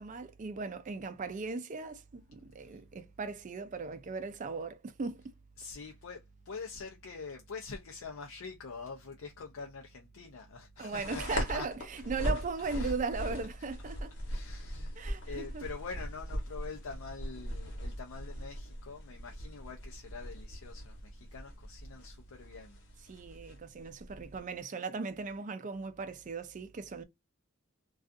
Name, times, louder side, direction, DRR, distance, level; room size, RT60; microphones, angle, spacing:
voice 1, 0.0-5.2 10.8-14.1 15.0-15.6 23.1-27.0, right 4 dB, 40° right, 0.4 m, -38 dB
voice 2, 5.6-6.2 6.5-11.7 12.7-12.9 14.3-15.0 15.2-22.8, left 4 dB, 75° left, 0.5 m, -45 dB
sound 1, 10.9-24.4, equal, 60° left, 1.0 m, -40 dB
2.4 x 2.3 x 2.4 m
head